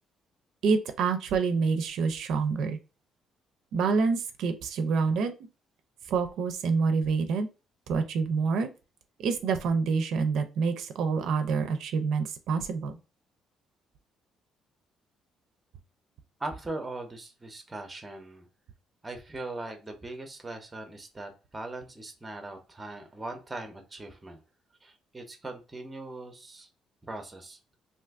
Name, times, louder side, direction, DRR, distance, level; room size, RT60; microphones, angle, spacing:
voice 1, 0.6-2.8 3.7-5.3 6.1-7.5 7.9-8.7 9.2-13.0, right 5 dB, 70° right, 7 dB, 0.4 m, -27 dB
voice 2, 16.4-18.5 19.0-24.4 24.8-26.7 27.0-27.6, right 2 dB, 10° right, 5 dB, 0.5 m, -40 dB
2.5 x 2.4 x 3.4 m, 0.31 s
cardioid pair, 165°, 0 cm